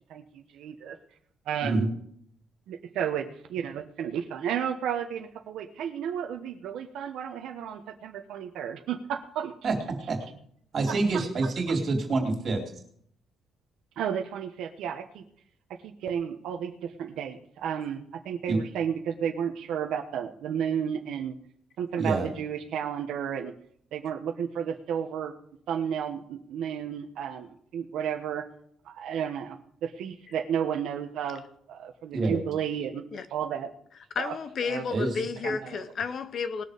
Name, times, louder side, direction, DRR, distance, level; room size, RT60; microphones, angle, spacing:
voice 1, 0.1-1.0 1.5-1.9 2.7-9.5 14.0-15.2 15.8-21.3 21.8-23.5 23.9-25.3 25.7-28.5 28.8-33.0 33.3-33.7 34.2-34.3 34.7-34.8 35.4-35.8, right 8 dB, 70° right, 1.1 m, -32 dB
voice 2, 10.7-12.6 18.5-18.6 22.0-22.3 32.1-32.4 34.9-35.1, right 3 dB, 35° right, 3.0 m, -26 dB
voice 3, 34.2-36.6, left 5 dB, 40° left, 0.7 m, -32 dB
19.5 x 6.8 x 5.1 m
cardioid pair, 175°, 0 cm